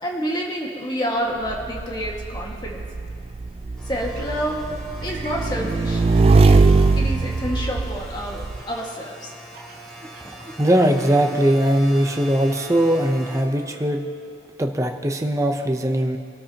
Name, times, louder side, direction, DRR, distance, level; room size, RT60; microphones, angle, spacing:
voice 1, 0.0-2.8 3.8-4.7 5.0-6.0 6.4-6.6 7.0-9.3 10.2-10.4, equal, 25° left, -2 dB, 1.8 m, -28 dB
Motorcycle / Engine, 1.5-8.6, right 3 dB, 30° right, 0.3 m, -20 dB
sound 1, 3.8-13.4, equal, 5° left, 2.1 m, -41 dB
sound 2, 4.1-4.3 5.0-5.7 6.4-7.1 8.6-8.9 9.4-10.5 11.0-11.4, right 2 dB, 55° right, 4.0 m, -41 dB
voice 2, 10.6-14.1 14.6-16.2, right 1 dB, 15° right, 3 dB, 0.7 m, -20 dB
23.5 x 13.0 x 2.9 m, 2.6 s
head